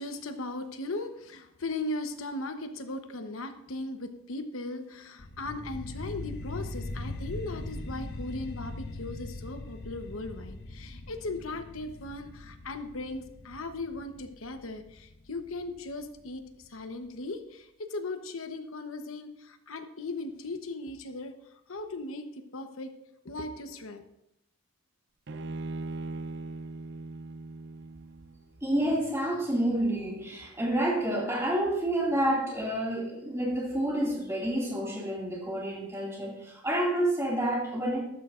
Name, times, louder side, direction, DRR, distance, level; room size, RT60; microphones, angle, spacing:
voice 1, 0.0-16.4 16.7-21.3 21.7-22.9 23.2-24.0, left 2 dB, 70° left, 7 dB, 1.0 m, -38 dB
sound 1, 5.2-16.2, left 2 dB, 50° left, 1.0 m, -41 dB
Bowed string instrument, 25.3-28.5, right 3 dB, 55° right, 0.5 m, -39 dB
voice 2, 28.6-38.0, right 1 dB, 15° right, -2 dB, 2.2 m, -29 dB
13.0 x 12.5 x 2.5 m, 0.80 s
head